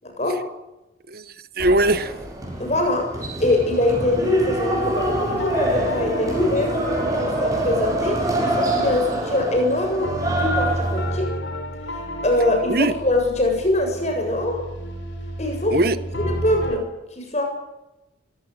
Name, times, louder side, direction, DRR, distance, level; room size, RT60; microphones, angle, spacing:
voice 1, 0.0-0.4 2.6-3.1 3.4-11.3 12.2-14.6 15.4-15.9 16.2-16.9 17.2-17.4, left 1 dB, 35° left, 7.3 m, -23 dB
voice 2, 1.1-2.1 12.7-12.9 15.7-16.0, right 2 dB, 50° right, 1.3 m, -20 dB
sound 1, 1.6-11.1, right 1 dB, 20° right, 7.1 m, -25 dB
sound 2, 4.7-16.8, equal, 80° left, 4.0 m, -32 dB
24.0 x 17.0 x 9.2 m
head